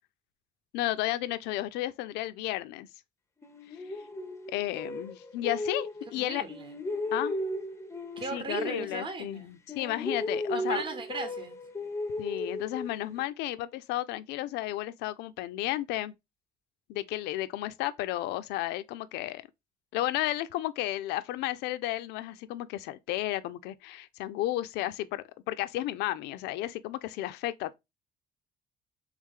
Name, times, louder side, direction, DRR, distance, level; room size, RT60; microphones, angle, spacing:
voice 1, 0.7-2.9 4.5-6.4 7.1-7.4 8.3-10.8 12.2-16.1 16.9-19.4 19.9-27.7, left 15 dB, 90° left, 0.4 m, -33 dB
sound 1, 3.4-6.2 6.5-9.4 9.7-13.2, left 1 dB, 15° left, 0.6 m, -36 dB
voice 2, 6.2-6.7 8.2-9.6 10.5-11.5, right 3 dB, 30° right, 0.9 m, -36 dB
3.5 x 3.3 x 3.5 m
cardioid pair, 110°, 17 cm